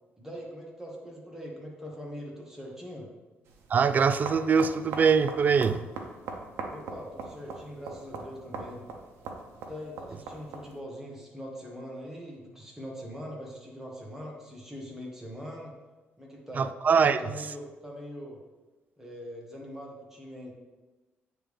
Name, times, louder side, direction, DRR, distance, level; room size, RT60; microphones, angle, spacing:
voice 1, 0.2-3.1 6.7-8.8 9.6-15.7 16.2-16.7 17.0-18.4 19.0-20.5, equal, 10° right, -2 dB, 1.6 m, -42 dB
sound 1, 3.5-10.8, right 4 dB, 80° right, 0.8 m, -41 dB
voice 2, 3.7-5.9 16.6-17.2, right 6 dB, 40° right, 13 dB, 0.3 m, -23 dB
8.8 x 3.5 x 3.5 m, 1.2 s
cardioid pair, 95°, 4 cm